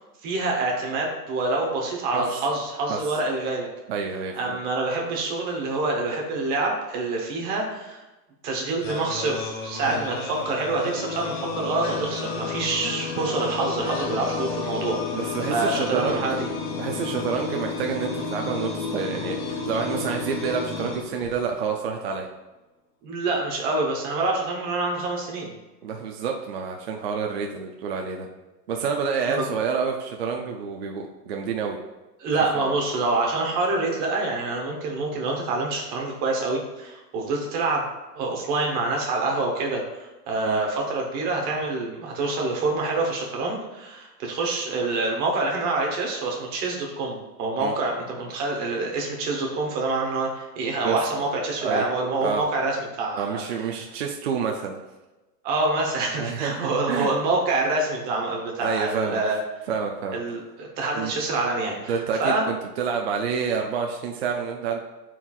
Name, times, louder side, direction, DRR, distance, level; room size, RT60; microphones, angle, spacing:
voice 1, 0.2-3.7 4.4-8.0 8.4-15.0 15.5-16.4 23.0-25.5 29.3-29.5 32.2-37.9 38.1-53.4 55.4-59.4 60.1-62.4, right 3 dB, 20° right, 0 dB, 0.9 m, -26 dB
voice 2, 3.9-4.6 9.9-10.0 15.1-16.2 16.7-22.3 25.8-28.3 28.7-31.8 32.6-32.7 40.5-40.6 47.6-47.7 50.8-51.0 51.6-51.9 52.2-52.4 53.1-54.8 56.2-57.1 58.6-59.2 59.7-60.2 60.9-61.1 61.9-64.8, right 6 dB, 40° right, 1 dB, 0.5 m, -28 dB
sound 1, 8.8-21.7, left 4 dB, 30° left, 0.6 m, -31 dB
12.5 x 4.6 x 2.4 m, 1.1 s
supercardioid pair, 165°, 50 cm